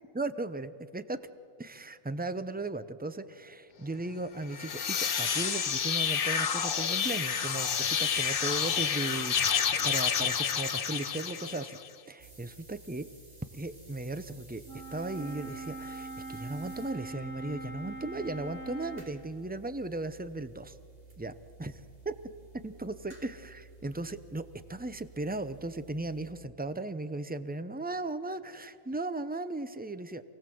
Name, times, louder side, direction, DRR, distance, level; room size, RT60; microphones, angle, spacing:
voice 1, 0.1-1.2 1.6-11.8 12.1-13.1 13.6-14.6 14.9-20.7 21.2-21.3 21.6-22.1 22.6-24.4 24.7-30.2, right 2 dB, 15° right, 12 dB, 0.4 m, -36 dB
sound 1, 4.4-11.9, left 7 dB, 45° left, 0.9 m, -29 dB
sound 2, 12.2-26.3, right 3 dB, 30° right, 2.9 m, -54 dB
Wind instrument woodwind instrument, 14.6-19.1, right 3 dB, ahead, 2.7 m, -42 dB
28.0 x 18.0 x 7.7 m, 2.3 s
omnidirectional pair, 1.4 m